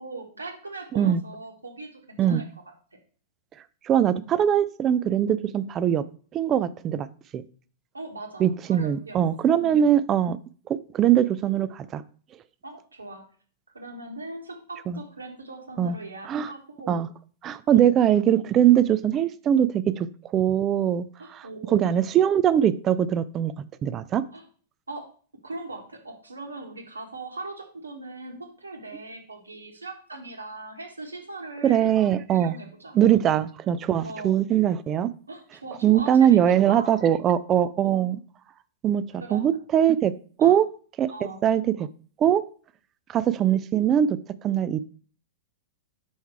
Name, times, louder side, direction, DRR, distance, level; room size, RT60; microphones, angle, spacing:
voice 1, 0.0-2.4 7.9-9.2 9.6-9.9 12.6-13.2 13.7-17.0 17.7-17.9 21.2-22.0 24.3-24.4 24.9-25.0 25.4-32.0 32.3-33.3 34.0-34.4 35.3-36.4 36.7-37.1 37.8-38.1 39.2-39.6 40.4-40.6 41.1-41.4, right 2 dB, 75° right, 2 dB, 1.5 m, -40 dB
voice 2, 3.8-6.0 6.3-7.1 7.3-7.4 8.4-10.4 10.7-12.0 14.9-15.0 15.8-16.0 16.3-16.5 16.9-17.1 17.4-20.1 20.3-21.1 21.3-23.5 23.8-24.2 31.6-32.5 32.9-35.1 35.8-38.2 38.8-40.1 40.4-40.7 41.0-41.1 41.4-41.6 42.2-42.4 43.1-44.2 44.4-44.8, right 10 dB, 25° right, 15 dB, 0.4 m, -21 dB
5.6 x 4.5 x 4.5 m, 0.42 s
figure-of-eight pair, 100°, 0 cm